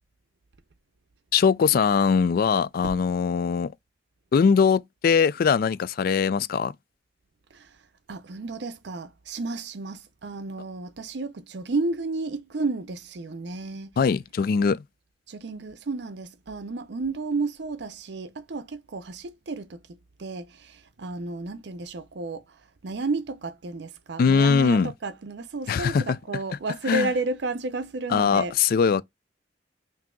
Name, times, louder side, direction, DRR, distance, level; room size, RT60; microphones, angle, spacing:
voice 1, 1.3-3.7 4.3-6.7 14.0-14.8 24.2-24.9 25.7-26.2 26.9-27.1 28.1-29.0, left 6 dB, 50° left, 0.3 m, -21 dB
voice 2, 8.1-14.0 15.3-19.8 20.2-22.4 22.8-28.5, right 3 dB, 65° right, 0.6 m, -32 dB
6.0 x 2.7 x 2.2 m
head